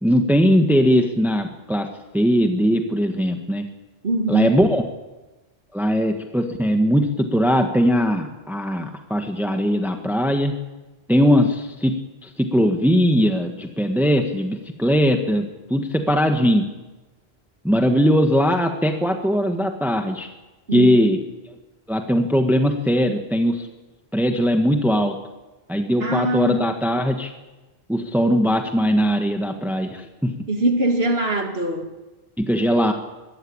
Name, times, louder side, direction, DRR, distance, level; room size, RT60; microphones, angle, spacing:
voice 1, 0.0-1.9 2.1-3.7 4.3-4.8 5.7-10.5 11.1-11.9 12.2-16.7 17.6-20.3 20.7-21.2 21.9-23.7 24.1-25.2 25.7-27.3 27.9-30.3 32.4-32.9, equal, ahead, 4 dB, 1.3 m, -20 dB
voice 2, 4.0-4.6 20.7-21.0 26.0-26.7 30.5-31.9, right 2 dB, 75° right, 4 dB, 2.6 m, -22 dB
22.5 x 15.0 x 8.8 m, 1.1 s
omnidirectional pair, 1.0 m